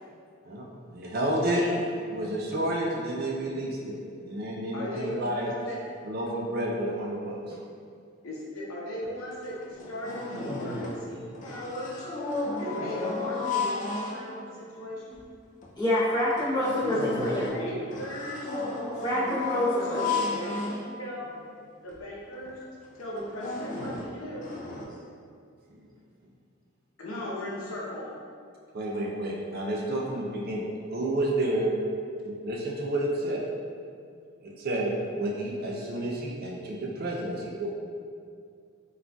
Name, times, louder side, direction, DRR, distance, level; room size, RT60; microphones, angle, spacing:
voice 1, 0.9-1.6 2.1-5.5 6.0-7.4 28.7-30.6 30.9-31.7 32.2-33.4 34.4-37.7, right 1 dB, 45° right, -2 dB, 0.4 m, -30 dB
voice 2, 1.4-1.9 4.7-5.9 8.2-12.1 12.6-15.2 16.8-18.5 19.9-21.4 21.8-22.6 23.0-24.5 27.0-28.1 29.9-30.2, left 1 dB, 85° left, -5 dB, 0.6 m, -37 dB
sound 1, 9.0-9.1 9.4-11.1 11.3-14.6 15.1-15.2 15.6-15.7 16.2-21.4 21.9-22.0 22.3-22.5 23.0-24.8, left 3 dB, 35° left, 0.3 m, -34 dB
voice 3, 15.8-17.4 19.0-20.1, left 1 dB, 20° left, -11 dB, 0.8 m, -26 dB
3.7 x 2.3 x 2.2 m, 2.3 s
head